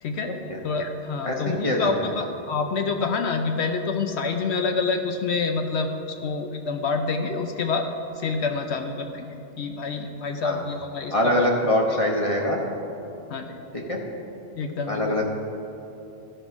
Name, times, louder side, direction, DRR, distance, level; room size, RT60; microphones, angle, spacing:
voice 1, 0.0-0.4 0.6-7.9 8.2-9.3 9.6-11.5 11.9-12.0 13.3-13.6 14.6-15.2, left 4 dB, 65° left, 5 dB, 0.9 m, -27 dB
voice 2, 1.2-1.9 10.4-10.6 11.1-12.6 13.7-14.0 14.9-15.4, left 1 dB, 30° left, -2 dB, 1.1 m, -23 dB
14.0 x 5.5 x 6.0 m, 2.9 s
omnidirectional pair, 1.3 m